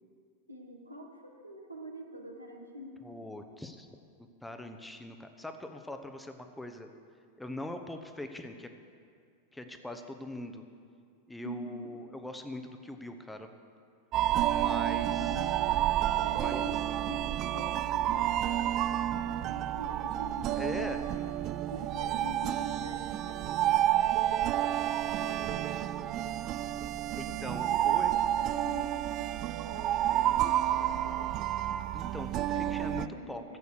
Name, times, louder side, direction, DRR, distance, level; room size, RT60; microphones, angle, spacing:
voice 1, 0.5-3.1 11.4-11.9 14.9-15.8 16.2-18.9 19.1-21.0 21.7-26.5 27.7-31.2 32.5-33.6, equal, 85° right, 1 dB, 1.5 m, -45 dB
voice 2, 3.0-3.9 4.4-6.9 7.4-8.7 9.5-10.6 11.3-13.5 14.4-15.3 16.4-16.6 20.6-21.0 27.1-28.1 31.9-33.4, left 1 dB, 5° left, 6 dB, 0.9 m, -41 dB
sound 1, 14.1-33.1, right 12 dB, 35° right, 0.3 m, -30 dB
14.0 x 8.3 x 6.5 m, 2.2 s
figure-of-eight pair, 90°, 0 cm